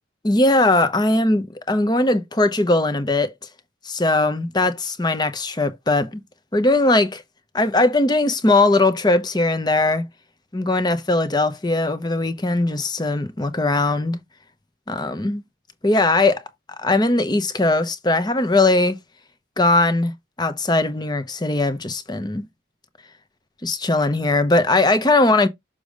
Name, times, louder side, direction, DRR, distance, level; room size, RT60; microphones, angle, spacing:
voice 1, 0.2-3.3 3.8-6.2 6.5-7.2 7.5-10.1 10.5-14.2 14.9-15.4 15.8-16.4 16.7-19.0 19.6-20.1 20.4-22.5 23.6-25.5, left 2 dB, 20° left, 0.9 m, -19 dB
6.9 x 5.1 x 3.3 m
head